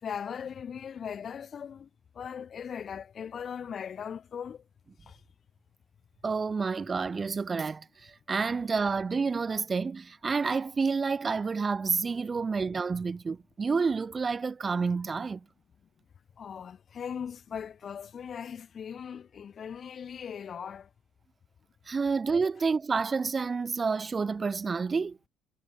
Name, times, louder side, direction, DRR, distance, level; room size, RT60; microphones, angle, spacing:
voice 1, 0.0-1.9 2.2-4.6 5.1-5.2 16.4-20.9, left 7 dB, 45° left, 3.8 m, -39 dB
voice 2, 6.2-15.4 21.9-25.2, right 4 dB, 25° right, 0.8 m, -29 dB
cardioid pair, 105°, 0 cm